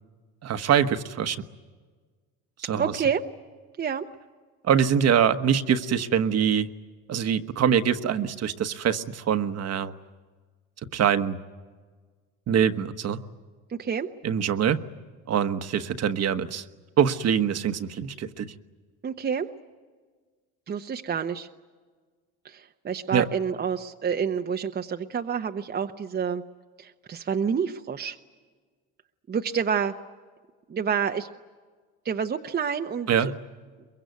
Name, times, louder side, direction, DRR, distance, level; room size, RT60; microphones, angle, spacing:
voice 1, 0.4-1.4 2.6-2.9 4.6-6.7 7.1-9.9 10.9-11.4 12.5-13.2 14.2-14.8 15.3-16.6 17.0-18.5 23.1-23.2 33.1-33.3, right 8 dB, 45° right, 9 dB, 1.3 m, -24 dB
voice 2, 2.8-3.2 3.8-4.1 13.7-14.1 19.0-19.5 20.7-21.5 22.4-26.4 26.8-28.2 29.3-29.9 30.7-31.3 32.0-33.3, right 7 dB, 30° right, 5 dB, 0.9 m, -28 dB
23.5 x 22.0 x 9.4 m, 1.5 s
cardioid pair, 105°, 35 cm